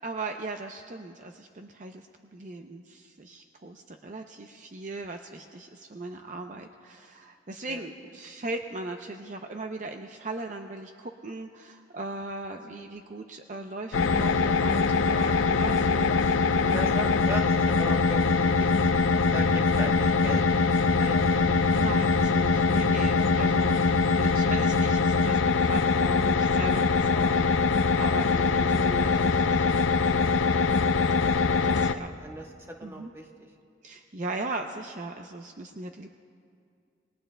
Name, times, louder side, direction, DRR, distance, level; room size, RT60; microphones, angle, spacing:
voice 1, 0.0-2.1 2.3-17.0 21.7-30.8 31.2-31.4 31.6-32.1 32.8-33.1 33.8-36.1, right 2 dB, 40° right, 4 dB, 0.5 m, -38 dB
sound 1, 13.9-31.9, left 4 dB, 90° left, 0.5 m, -23 dB
voice 2, 16.6-18.9 19.3-21.6 22.3-22.8 23.1-23.3 31.6-31.9 32.2-32.4 32.8-33.2, equal, 15° right, 1 dB, 1.0 m, -38 dB
sound 2, 18.7-26.4, left 1 dB, 25° left, 5.2 m, -39 dB
28.0 x 20.0 x 2.2 m, 2.3 s
head